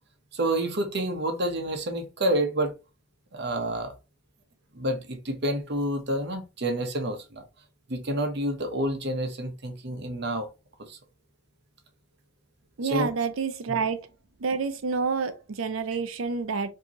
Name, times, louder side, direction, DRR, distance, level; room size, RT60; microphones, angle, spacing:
voice 1, 0.3-2.7 3.3-3.9 4.7-7.5 7.9-10.5 10.9-11.0 12.9-13.1, right 1 dB, 55° right, 0.9 m, -28 dB
voice 2, 12.8-14.0 14.4-16.7, right 5 dB, 85° right, 0.6 m, -28 dB
4.5 x 2.8 x 2.9 m
head